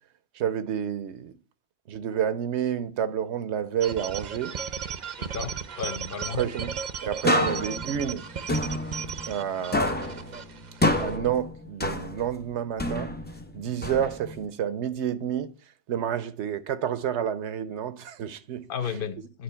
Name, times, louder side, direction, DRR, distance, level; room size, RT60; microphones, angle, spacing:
voice 1, 0.3-1.3 1.9-4.5 6.3-6.7 7.0-8.2 9.3-10.1 11.0-13.1 13.5-15.5 15.9-18.6, right 9 dB, 75° right, 0.9 m, -29 dB
sound 1, 3.8-11.1, right 7 dB, 50° right, 0.6 m, -36 dB
voice 2, 5.2-6.4 18.7-19.4, left 6 dB, 55° left, 0.9 m, -33 dB
sound 2, 7.2-9.5 9.7-12.4 12.8-14.5, left 1 dB, 15° left, 0.4 m, -28 dB
9.6 x 3.8 x 5.5 m
omnidirectional pair, 1.2 m